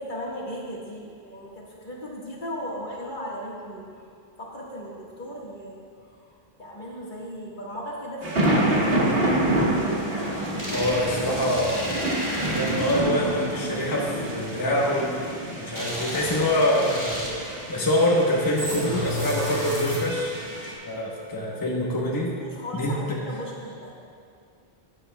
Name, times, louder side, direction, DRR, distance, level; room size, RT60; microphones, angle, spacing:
voice 1, 0.0-3.8 4.4-8.9 10.3-11.1 21.9-23.9, equal, 50° left, -4 dB, 1.7 m, -37 dB
sound 1, 8.2-20.7, right 1 dB, 70° right, 1.7 m, -28 dB
sound 2, 10.2-13.3 15.8-17.6 18.6-20.3, equal, 25° right, 2.2 m, -31 dB
voice 2, 10.7-12.0 12.4-15.1 15.5-17.3 17.7-20.4 20.8-22.3 22.7-23.2, left 1 dB, 20° left, -4 dB, 0.9 m, -25 dB
13.0 x 9.8 x 2.2 m, 2.4 s
omnidirectional pair, 1.0 m